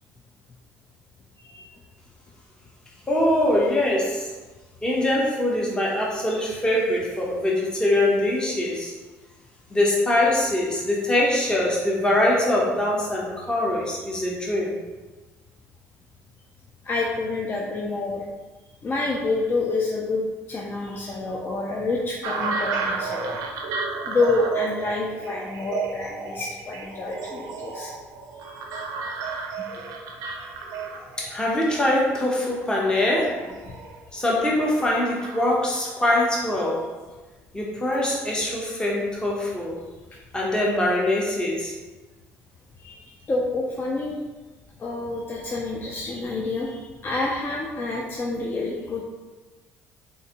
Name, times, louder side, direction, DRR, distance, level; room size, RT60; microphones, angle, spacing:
voice 1, 3.1-4.3 4.8-8.9 9.7-14.7 31.2-33.4 34.1-36.9 37.5-39.8 40.3-41.7, left 1 dB, 15° left, -4 dB, 0.8 m, -23 dB
voice 2, 16.8-18.2 18.8-23.4 24.1-27.9 28.4-28.8 29.6-29.7 30.2-30.5 31.3-31.4 33.6-33.7 42.8-44.2 44.8-49.0, left 3 dB, 35° left, -2 dB, 0.5 m, -28 dB
sound 1, 22.2-35.4, right 4 dB, 70° right, 0.4 m, -33 dB
3.8 x 2.6 x 2.8 m, 1.2 s
supercardioid pair, 80°, 6 cm